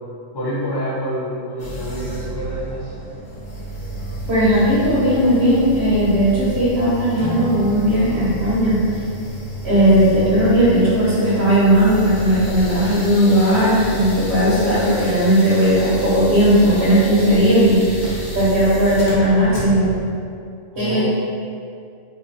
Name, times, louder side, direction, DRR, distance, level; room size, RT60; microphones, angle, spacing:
voice 1, 0.3-2.9 20.7-21.0, equal, 25° left, -7 dB, 0.6 m, -27 dB
sound 1, 1.6-20.0, right 1 dB, 80° left, 1.1 m, -30 dB
voice 2, 4.3-8.8 9.6-19.9 20.8-21.0, equal, 60° right, -10 dB, 1.1 m, -16 dB
Acoustic guitar / Strum, 7.2-11.6, right 3 dB, 85° right, 1.1 m, -34 dB
3.0 x 2.1 x 4.0 m, 2.4 s
omnidirectional pair, 1.3 m